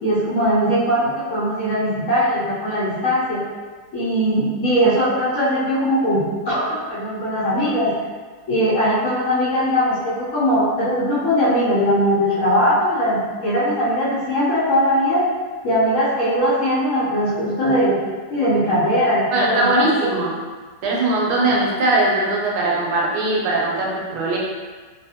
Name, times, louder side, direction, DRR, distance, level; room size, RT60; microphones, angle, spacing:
voice 1, 0.0-3.4 3.9-7.9 8.5-15.2 15.6-18.0 18.3-20.1, equal, 55° left, -9 dB, 1.0 m, -20 dB
voice 2, 19.3-20.3 20.8-24.4, right 2 dB, 75° right, -3 dB, 1.1 m, -20 dB
2.7 x 2.5 x 2.7 m, 1.4 s
omnidirectional pair, 1.8 m